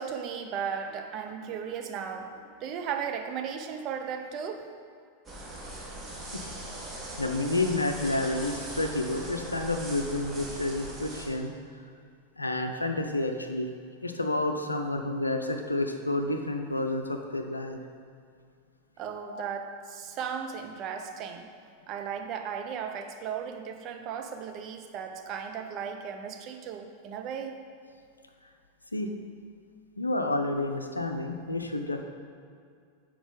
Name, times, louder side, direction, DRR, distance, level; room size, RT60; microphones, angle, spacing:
voice 1, 0.0-4.7 19.0-21.5 21.9-27.6, right 7 dB, 35° right, 5 dB, 0.6 m, -36 dB
sound 1, 5.3-11.3, right 1 dB, 20° right, 1.2 m, -40 dB
voice 2, 7.2-11.5 12.4-13.7 14.0-17.8 19.3-19.4 28.9-29.1 30.0-32.0, left 2 dB, 80° left, 5 dB, 0.5 m, -30 dB
7.1 x 4.6 x 3.7 m, 2.3 s
figure-of-eight pair, 90°, 0 cm